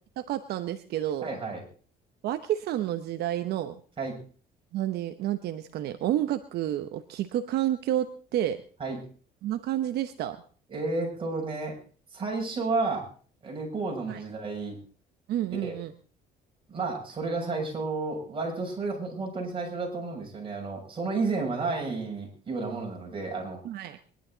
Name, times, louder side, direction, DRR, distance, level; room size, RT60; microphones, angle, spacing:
voice 1, 0.2-1.3 2.2-3.8 4.7-8.6 9.4-10.4 14.1-14.2 15.3-15.9 21.4-21.5 23.6-24.0, right 12 dB, 70° right, 9 dB, 0.9 m, -30 dB
voice 2, 1.2-1.6 4.0-4.2 8.8-9.0 10.7-11.7 12.1-13.1 13.4-14.8 15.5-15.8 16.7-23.6, right 3 dB, 30° right, 0 dB, 6.7 m, -31 dB
23.0 x 11.5 x 3.9 m, 0.41 s
cardioid pair, 110°, 17 cm